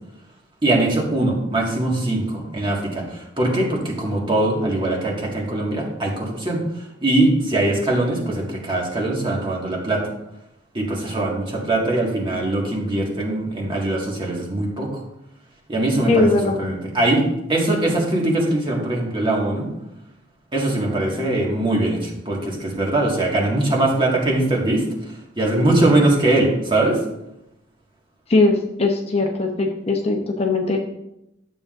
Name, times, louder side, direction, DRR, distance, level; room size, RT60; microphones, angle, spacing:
voice 1, 0.6-10.1 10.7-15.0 15.7-17.2 17.5-19.7 20.5-27.0, right 2 dB, 25° right, -2 dB, 1.8 m, -21 dB
voice 2, 16.1-16.6 28.3-30.8, left 3 dB, 30° left, 1 dB, 0.8 m, -19 dB
11.5 x 7.4 x 2.5 m, 0.85 s
head